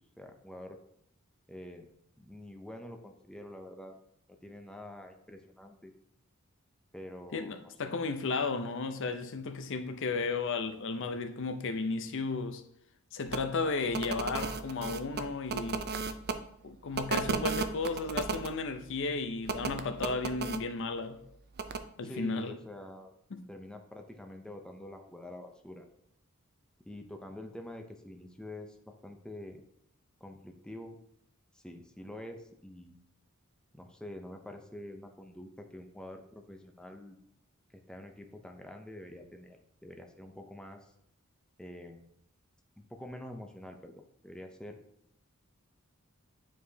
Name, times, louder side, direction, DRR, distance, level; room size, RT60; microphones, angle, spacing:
voice 1, 0.2-0.8 1.5-1.9 2.2-3.9 4.4-5.9 6.9-7.6 7.8-7.9 22.0-23.1 23.5-25.8 26.9-29.6 30.2-31.0 31.5-33.0 33.7-37.2 37.7-39.6 39.8-40.9 41.6-42.1 42.8-44.8, left 1 dB, 5° left, 0.6 m, -46 dB
voice 2, 7.3-12.6 13.1-15.9 16.6-21.2 22.0-22.6 23.3-23.4, left 4 dB, 60° left, 0.6 m, -34 dB
sound 1, 13.3-13.4 13.9-16.3 16.9-18.5 19.5-20.6 21.6-21.8, right 4 dB, 45° right, 0.5 m, -33 dB
9.1 x 4.7 x 2.7 m
head